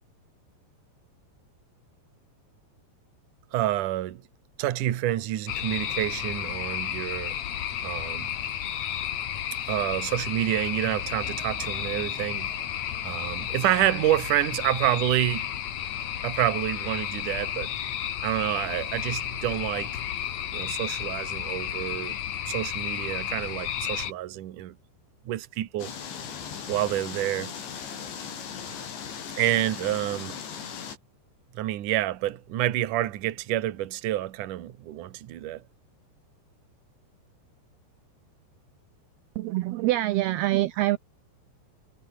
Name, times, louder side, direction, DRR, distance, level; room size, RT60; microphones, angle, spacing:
voice 1, 3.5-4.2 4.6-7.4 7.8-8.3 9.7-12.5 13.0-15.5 16.2-17.7 18.2-19.9 20.5-22.2 22.5-24.7 25.3-25.9 26.7-27.5 29.3-30.4 31.5-35.6, right 14 dB, 60° right, 2.5 m, -28 dB
sound 1, 5.5-24.1, left 10 dB, 55° left, 2.1 m, -32 dB
sound 2, 11.1-15.4 15.7-15.8 16.4-16.5, equal, ahead, 4.7 m, -50 dB
sound 3, 25.8-31.0, left 7 dB, 90° left, 6.6 m, -38 dB
voice 2, 39.4-41.0, right 16 dB, 75° right, 2.6 m, -25 dB
omnidirectional pair, 5.0 m